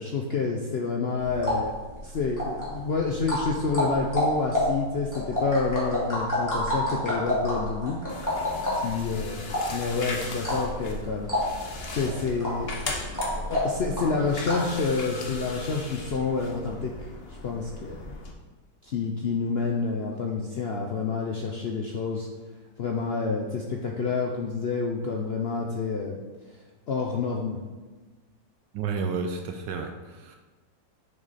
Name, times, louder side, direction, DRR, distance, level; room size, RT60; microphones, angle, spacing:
voice 1, 0.0-1.7 2.0-8.0 8.7-11.3 11.9-18.0 18.8-22.3 22.8-26.2 26.9-27.6, left 4 dB, 85° left, 0 dB, 0.5 m, -28 dB
sound 1, 1.2-14.8, left 1 dB, 10° left, 2.3 m, -30 dB
sound 2, 8.1-18.3, left 3 dB, 45° left, 0.9 m, -38 dB
voice 2, 28.7-30.4, right 5 dB, 80° right, 5 dB, 1.2 m, -31 dB
6.9 x 6.4 x 4.1 m, 1.3 s
omnidirectional pair, 1.9 m